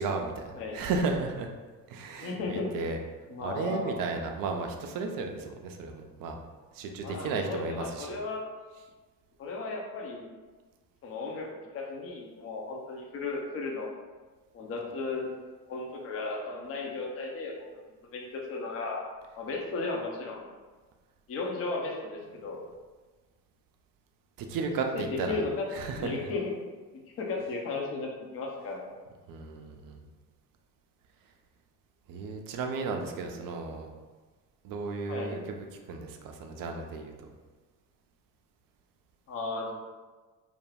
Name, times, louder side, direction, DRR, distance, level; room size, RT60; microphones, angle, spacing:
voice 1, 0.0-1.5 1.9-3.0 3.4-6.4 6.7-8.1 24.4-25.4 25.7-26.2 29.3-30.0 32.1-33.9 34.6-35.5 35.9-37.1, right 4 dB, 45° right, 4 dB, 0.5 m, -34 dB
voice 2, 2.2-2.8 3.3-4.0 7.0-8.4 9.4-10.3 11.0-13.9 14.5-15.3 15.7-17.7 18.1-19.0 19.4-20.4 21.3-22.6 24.6-25.7 26.0-26.5 27.2-28.9 33.2-33.4 35.1-35.3 39.3-39.7, left 3 dB, 30° left, -1 dB, 0.6 m, -35 dB
2.4 x 2.1 x 3.3 m, 1.3 s
figure-of-eight pair, 55°, 49 cm